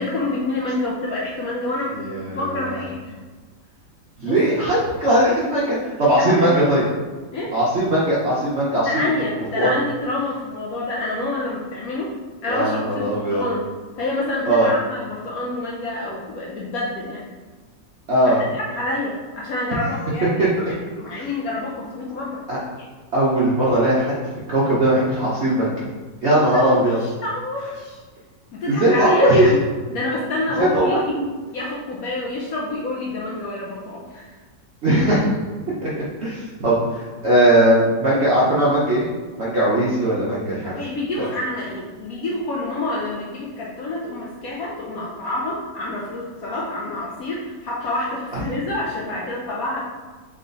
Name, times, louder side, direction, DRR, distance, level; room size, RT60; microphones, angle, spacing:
voice 1, 0.0-2.0 2.3-3.2 4.2-4.4 6.2-6.7 7.3-7.5 8.9-12.1 12.4-13.6 14.0-17.3 18.3-22.4 26.5-28.0 28.5-29.6 29.9-31.1 31.5-34.3 40.6-49.8, left 2 dB, 75° left, -3 dB, 0.8 m, -28 dB
voice 2, 2.0-2.8 4.2-6.8 7.5-8.9 9.5-9.7 12.5-13.4 14.5-14.7 18.1-18.4 20.4-20.5 21.1-21.2 22.5-22.6 23.1-24.2 24.5-25.9 26.2-27.0 28.6-29.4 30.6-31.3 34.8-35.3 35.8-39.1 39.4-40.7, right 1 dB, 60° right, -8 dB, 0.7 m, -19 dB
3.4 x 3.0 x 3.9 m, 1.4 s
omnidirectional pair, 2.0 m